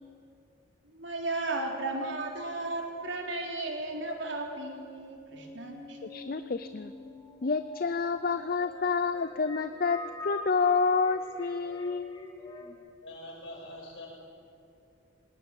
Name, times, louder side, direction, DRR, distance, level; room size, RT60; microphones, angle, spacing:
voice 1, 0.9-6.0, right 2 dB, 65° right, 2 dB, 3.4 m, -35 dB
sound 1, 3.3-12.8, left 2 dB, 20° left, 2.0 m, -46 dB
voice 2, 6.0-6.9 7.4-12.2, left 4 dB, 45° left, 11 dB, 0.5 m, -29 dB
voice 3, 13.0-14.1, left 1 dB, 65° left, -2 dB, 6.9 m, -44 dB
20.0 x 18.5 x 8.9 m, 2.6 s
head